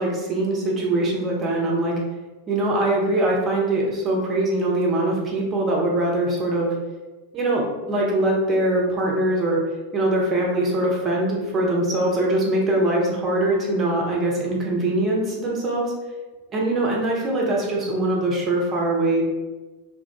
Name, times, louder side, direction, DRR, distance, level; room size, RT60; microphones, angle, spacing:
voice 1, 0.0-1.9 2.5-6.7 7.3-9.6 9.9-15.9 16.5-19.2, right 1 dB, 25° right, -2 dB, 0.9 m, -22 dB
3.0 x 2.5 x 3.4 m, 1.2 s
figure-of-eight pair, 90°, 0 cm